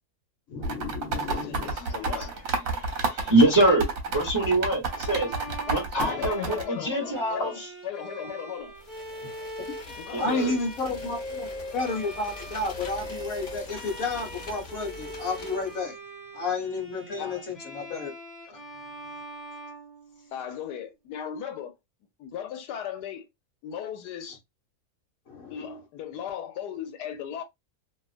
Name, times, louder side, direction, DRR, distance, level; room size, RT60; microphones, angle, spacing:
voice 1, 0.5-1.7 6.0-6.3 10.2-15.9 16.3-18.1 18.5-18.6 25.3-25.5, left 3 dB, 60° left, 1.3 m, -31 dB
sound 1, 0.6-6.6, right 4 dB, 65° right, 1.0 m, -30 dB
voice 2, 1.1-2.3 5.7-8.8 9.9-10.5 17.2-17.5 20.3-21.7 22.2-23.3 23.6-24.4 25.5-27.4, left 9 dB, 85° left, 1.2 m, -37 dB
voice 3, 1.8-2.3 2.7-5.3 5.7-7.5 10.1-10.6, right 2 dB, 20° right, 0.6 m, -24 dB
Bowed string instrument, 4.9-20.6, equal, ahead, 1.1 m, -42 dB
sound 2, 8.8-15.9, left 2 dB, 45° left, 0.9 m, -44 dB
2.7 x 2.3 x 2.4 m
omnidirectional pair, 1.7 m